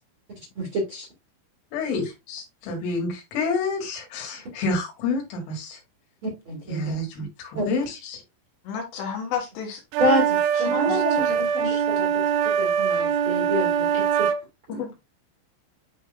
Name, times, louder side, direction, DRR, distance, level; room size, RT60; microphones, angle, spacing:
voice 1, 0.6-1.1 6.2-6.9 7.5-7.6 10.0-12.1 12.4-13.9 14.2-14.3 14.7-14.8, equal, 40° right, -1 dB, 1.9 m, -27 dB
voice 2, 1.7-5.8 6.7-8.2, left 3 dB, 80° left, 0 dB, 4.6 m, -29 dB
voice 3, 8.6-9.8 10.7-11.3 11.6-11.8 14.7-14.9, left 7 dB, 65° left, 2 dB, 3.2 m, -32 dB
sound 1, 9.9-14.4, right 8 dB, 80° right, 2.9 m, -23 dB
10.5 x 3.8 x 2.7 m, 0.23 s
omnidirectional pair, 5.9 m